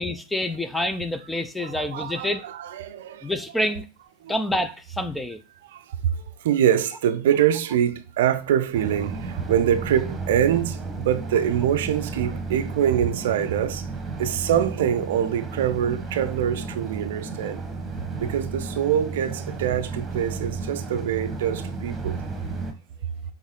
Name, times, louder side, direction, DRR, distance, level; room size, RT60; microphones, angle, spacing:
voice 1, 0.0-2.4 3.2-3.9 4.3-5.4, left 1 dB, 5° left, 0.6 m, -27 dB
voice 2, 1.6-3.3 4.2-4.3 5.7-6.2 6.4-13.9 14.2-17.6 18.2-22.2, right 10 dB, 55° right, 0.6 m, -24 dB
sound 1, 8.7-22.7, right 3 dB, 15° right, 1.4 m, -33 dB
7.1 x 3.9 x 3.7 m
figure-of-eight pair, 90°, 0 cm